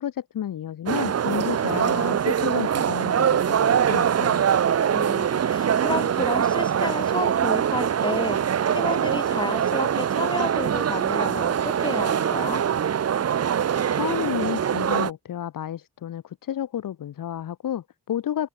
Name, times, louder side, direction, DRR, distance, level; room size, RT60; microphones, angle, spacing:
voice 1, 0.0-4.5 13.9-18.5, left 10 dB, 85° left, 7.2 m, -31 dB
sound 1, 0.9-15.1, right 8 dB, 50° right, 1.5 m, -23 dB
voice 2, 4.9-12.6, left 2 dB, 15° left, 1.4 m, -31 dB
wide cardioid pair, 150°, 32 cm